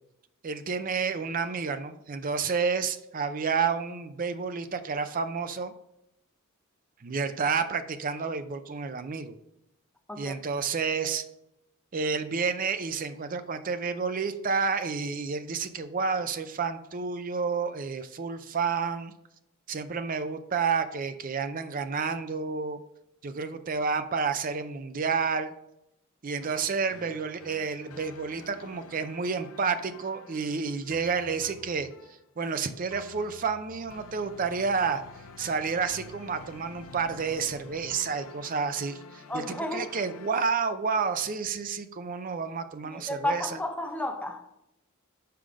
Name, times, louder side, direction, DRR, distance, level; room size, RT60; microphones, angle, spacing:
voice 1, 0.4-5.7 7.0-9.4 10.2-11.2 11.9-19.1 19.7-22.8 23.2-25.5 26.2-31.9 32.4-35.0 35.4-43.5, right 5 dB, 40° right, 0.5 m, -30 dB
sound 1, 26.4-40.3, left 4 dB, 85° left, 0.5 m, -49 dB
voice 2, 39.3-39.9 42.8-44.6, left 1 dB, 5° left, 0.6 m, -32 dB
5.7 x 4.9 x 5.0 m
head